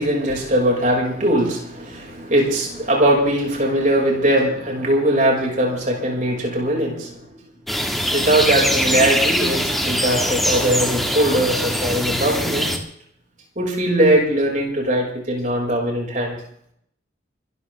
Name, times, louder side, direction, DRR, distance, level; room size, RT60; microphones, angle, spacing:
voice 1, 0.0-7.3 8.1-12.7 13.6-16.4, right 1 dB, 40° right, -1 dB, 6.0 m, -20 dB
sound 1, 7.7-12.8, equal, ahead, 2.1 m, -22 dB
25.5 x 13.5 x 3.7 m, 0.66 s
head